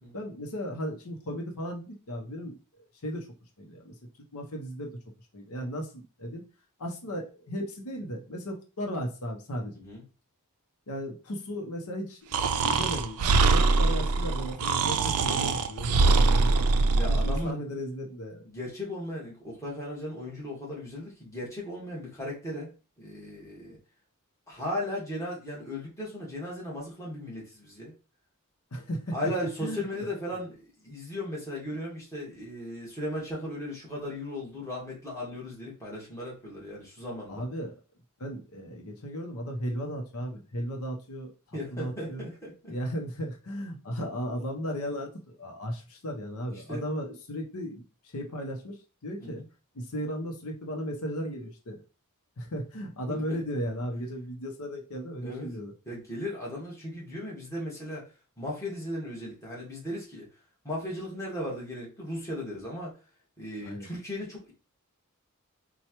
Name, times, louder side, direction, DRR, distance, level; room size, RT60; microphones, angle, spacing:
voice 1, 0.1-2.5 3.0-3.3 3.6-3.9 4.3-4.9 5.3-6.4 6.8-9.7 10.9-16.6 17.1-18.4 28.7-29.2 29.6-29.8 37.3-37.7 38.2-42.3 42.7-49.4 49.7-51.8 52.4-55.7 63.6-63.9, equal, 90° left, 2 dB, 0.8 m, -36 dB
Breathing, 12.3-17.4, right 3 dB, 85° right, 0.4 m, -23 dB
voice 2, 17.0-17.6 18.4-22.7 23.0-23.8 24.5-27.9 29.1-37.4 41.5-42.7 46.5-46.8 49.2-49.5 53.1-53.2 55.2-55.5 55.8-58.0 58.4-60.3 60.6-63.0 63.4-64.5, left 1 dB, 15° left, -4 dB, 1.4 m, -36 dB
4.4 x 2.3 x 2.9 m, 0.33 s
head